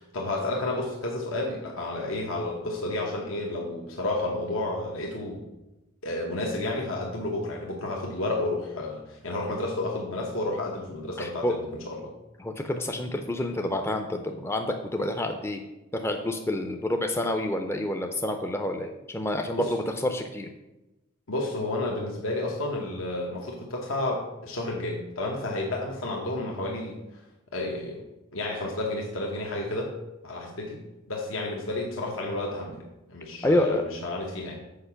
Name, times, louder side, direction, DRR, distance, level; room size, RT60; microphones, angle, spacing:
voice 1, 0.0-5.4 6.0-12.1 19.6-19.7 21.3-27.2 27.5-28.0 28.3-29.9 30.2-30.8 31.1-32.8 33.1-34.6, left 2 dB, 85° left, -1 dB, 1.0 m, -31 dB
voice 2, 11.2-11.6 12.4-15.6 15.9-20.5 33.4-33.8, left 1 dB, 10° left, 4 dB, 0.4 m, -28 dB
6.7 x 4.8 x 5.7 m, 1.0 s
head